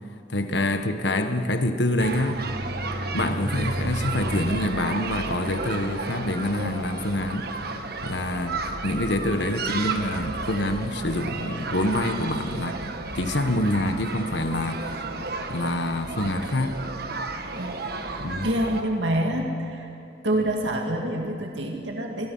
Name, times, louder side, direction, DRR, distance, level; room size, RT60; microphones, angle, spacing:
voice 1, 0.3-2.4 3.1-7.5 8.0-12.8 13.1-15.1 15.5-16.8 18.2-18.5, left 1 dB, 70° left, 7 dB, 1.4 m, -26 dB
sound 1, 2.0-18.8, right 3 dB, 60° right, 1.5 m, -32 dB
voice 2, 18.4-19.9 20.2-22.3, right 1 dB, 85° right, 1 dB, 2.1 m, -26 dB
25.0 x 21.5 x 5.7 m, 2.8 s
head